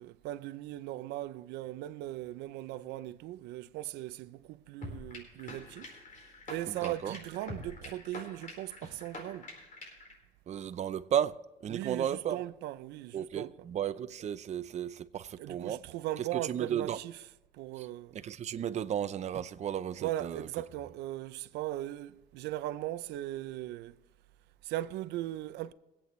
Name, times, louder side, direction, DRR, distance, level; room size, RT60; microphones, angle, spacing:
voice 1, 0.0-5.9 6.5-9.5 11.7-13.5 15.4-17.2 17.5-18.2 20.0-24.0 24.6-25.7, right 15 dB, 85° right, 0.5 m, -38 dB
sound 1, 4.8-10.1, left 2 dB, 50° left, 4.3 m, -46 dB
voice 2, 6.7-7.2 10.5-11.4 11.6-12.4 13.1-15.8 16.2-17.0 17.8-17.9 18.1-20.5, right 9 dB, 40° right, 0.6 m, -34 dB
23.0 x 8.5 x 3.2 m
cardioid pair, 110°, 17 cm